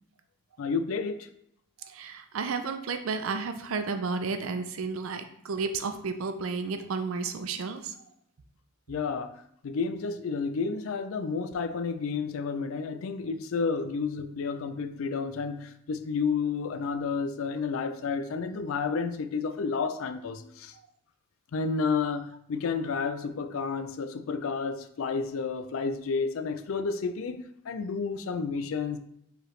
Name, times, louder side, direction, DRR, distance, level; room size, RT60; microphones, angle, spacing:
voice 1, 0.6-1.3 8.9-20.7 21.5-29.0, left 5 dB, 80° left, 0.4 m, -31 dB
voice 2, 1.9-7.9, right 4 dB, 85° right, 0.5 m, -32 dB
4.6 x 3.3 x 3.1 m
head